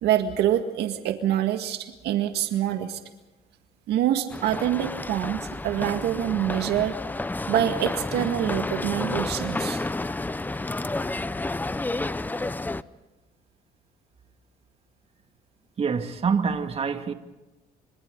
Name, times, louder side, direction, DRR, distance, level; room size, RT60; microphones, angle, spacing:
voice 1, 0.0-3.0 3.9-6.9 7.5-9.8, right 11 dB, 80° right, 1.9 m, -25 dB
sound 1, 4.3-12.8, left 2 dB, 10° left, 0.7 m, -30 dB
voice 2, 15.8-17.1, right 5 dB, 35° right, 2.3 m, -26 dB
29.0 x 26.5 x 3.9 m
cardioid pair, 110°, 17 cm